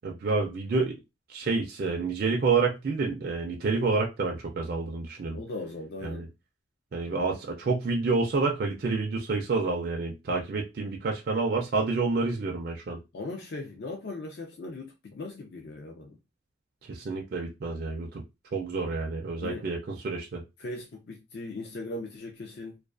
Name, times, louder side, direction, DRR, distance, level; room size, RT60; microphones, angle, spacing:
voice 1, 0.0-1.0 1.3-5.4 6.0-6.3 6.9-13.0 16.9-18.2 18.5-19.8 20.0-20.4, right 3 dB, 45° right, 0.3 m, -28 dB
voice 2, 5.3-6.3 13.1-16.2 19.4-19.7 20.6-22.8, left 2 dB, 50° left, 0.4 m, -39 dB
2.3 x 2.2 x 2.4 m
head